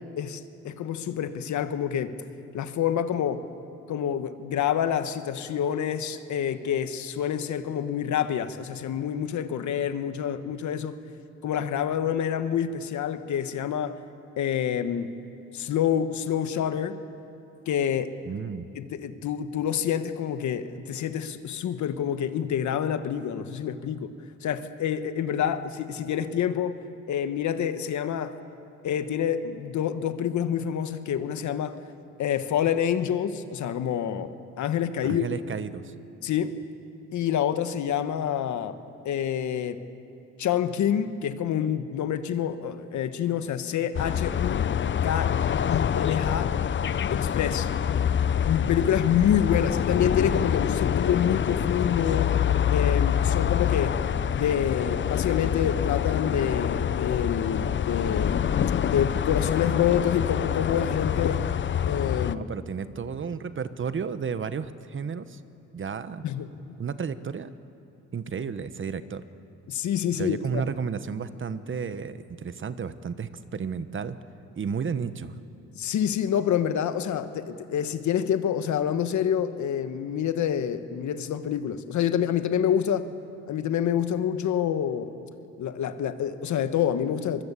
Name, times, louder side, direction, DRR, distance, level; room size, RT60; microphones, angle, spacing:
voice 1, 0.2-2.2 2.5-3.4 3.9-11.0 11.4-14.0 14.4-15.1 15.5-17.0 17.7-18.1 18.7-24.1 24.4-26.8 27.1-28.3 28.8-31.8 32.2-35.3 36.2-36.5 37.1-38.8 39.0-39.8 40.4-44.7 45.0-45.4 45.7-46.5 47.1-47.7 48.4-52.3 52.7-54.0 54.3-58.5 58.8-61.4 61.9-62.5 66.2-66.7 69.7-70.6 75.7-83.1 83.5-85.1 85.6-87.4, left 9 dB, 70° left, 10 dB, 1.4 m, -27 dB
voice 2, 18.2-18.7 35.0-35.9 62.3-65.4 65.7-66.2 66.8-67.5 68.1-69.2 70.2-74.2 74.6-75.4, right 6 dB, 40° right, 12 dB, 1.2 m, -32 dB
sound 1, 43.9-62.4, left 9 dB, 40° left, 0.6 m, -26 dB
24.0 x 22.5 x 8.4 m, 2.7 s
cardioid pair, 90°, 30 cm